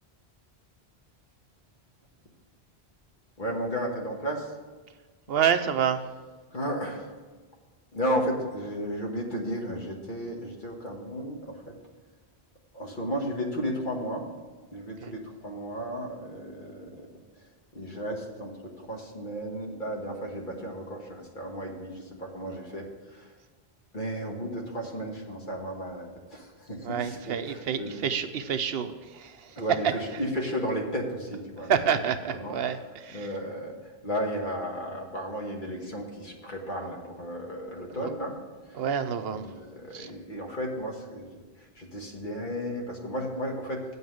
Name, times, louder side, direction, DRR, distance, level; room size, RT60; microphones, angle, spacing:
voice 1, 3.4-4.6 6.5-7.1 7.9-11.7 12.7-14.3 14.7-17.1 17.7-23.3 23.9-28.0 29.6-31.8 32.3-32.6 33.1-33.8 34.0-38.4 38.7-38.8 39.3-43.8, equal, 50° left, 0 dB, 1.5 m, -34 dB
voice 2, 5.3-6.0 15.0-15.1 26.8-28.9 29.2-29.3 31.7-33.2 38.0-38.1 38.7-39.4 39.9-40.1, right 8 dB, 70° right, 10 dB, 0.8 m, -28 dB
7.9 x 5.6 x 7.7 m, 1.3 s
omnidirectional pair, 1.1 m